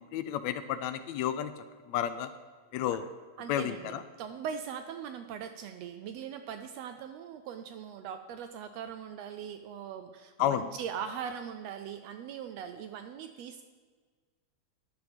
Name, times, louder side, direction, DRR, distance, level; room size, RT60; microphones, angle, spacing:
voice 1, 0.0-1.5 1.9-2.3 2.7-3.1 3.5-4.0 10.4-10.7, left 10 dB, 80° left, 11 dB, 1.7 m, -31 dB
voice 2, 3.4-13.6, right 8 dB, 80° right, 8 dB, 1.5 m, -40 dB
14.0 x 10.5 x 3.5 m, 1.5 s
omnidirectional pair, 3.3 m